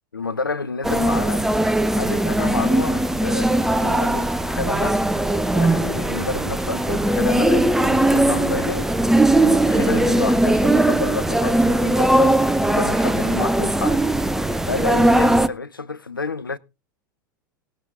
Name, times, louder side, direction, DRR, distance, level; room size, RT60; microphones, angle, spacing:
voice 1, 0.1-1.5 1.9-3.5 3.8-5.0 5.5-8.9 9.4-12.4 12.7-14.0 14.7-16.6, left 4 dB, 80° left, 0.8 m, -29 dB
sound 1, 0.8-15.5, right 1 dB, 5° right, 0.7 m, -19 dB
18.5 x 8.2 x 3.8 m
figure-of-eight pair, 85°, 11 cm